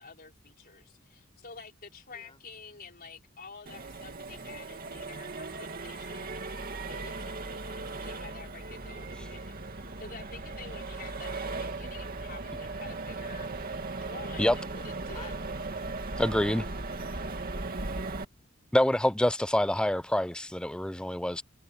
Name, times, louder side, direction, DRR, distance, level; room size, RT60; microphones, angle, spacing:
voice 1, 0.0-13.5 14.0-15.3, left 4 dB, 45° left, 3.8 m, -49 dB
Accelerating revving vroom, 3.7-18.2, right 3 dB, 45° right, 2.4 m, -37 dB
voice 2, 15.1-15.7, left 3 dB, 25° left, 6.4 m, -53 dB
voice 3, 16.2-16.7 18.7-21.4, left 1 dB, 5° left, 0.5 m, -26 dB
head